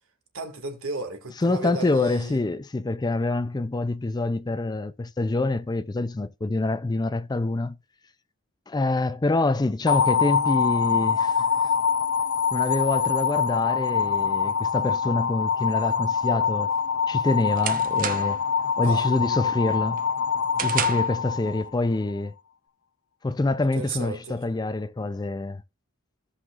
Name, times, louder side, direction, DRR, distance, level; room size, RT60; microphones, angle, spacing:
voice 1, 0.3-2.4 18.8-19.1 23.7-24.4, right 3 dB, 85° right, 2.0 m, -34 dB
voice 2, 1.4-7.8 8.7-11.4 12.5-16.7 17.1-18.4 18.8-20.0 20.6-22.3 23.2-25.6, left 2 dB, 20° left, 0.4 m, -26 dB
sound 1, 9.9-22.0, left 6 dB, 80° left, 0.6 m, -24 dB
sound 2, 16.7-18.5 18.9-19.3 19.7-21.2, right 7 dB, 40° right, 0.9 m, -32 dB
16.0 x 5.6 x 2.4 m
head